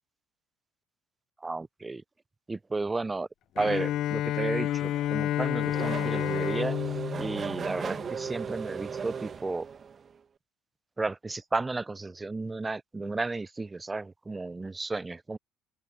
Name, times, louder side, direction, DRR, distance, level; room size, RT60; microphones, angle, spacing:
voice 1, 1.4-2.0 2.5-3.3 3.6-6.8 7.2-9.7 11.0-15.4, right 3 dB, 20° right, 0.4 m, -33 dB
Bowed string instrument, 3.6-8.5, left 13 dB, 60° left, 0.4 m, -30 dB
Race car auto racing / Accelerating revving vroom, 4.5-10.1, right 6 dB, 40° right, 1.4 m, -36 dB
open air
hypercardioid pair, 60°, 0 cm